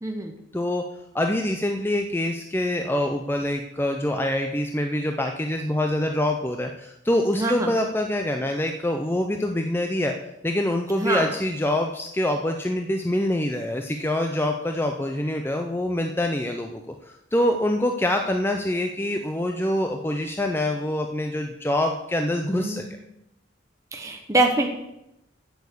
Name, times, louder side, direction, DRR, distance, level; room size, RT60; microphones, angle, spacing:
voice 1, 0.0-0.3 7.3-7.7 11.0-11.3 22.5-22.9 23.9-24.7, right 2 dB, 15° right, 2 dB, 1.1 m, -24 dB
voice 2, 0.5-0.8 1.1-10.1 10.4-16.8 17.3-22.8, left 1 dB, 10° left, 4 dB, 0.6 m, -25 dB
8.3 x 7.1 x 8.4 m, 0.86 s
head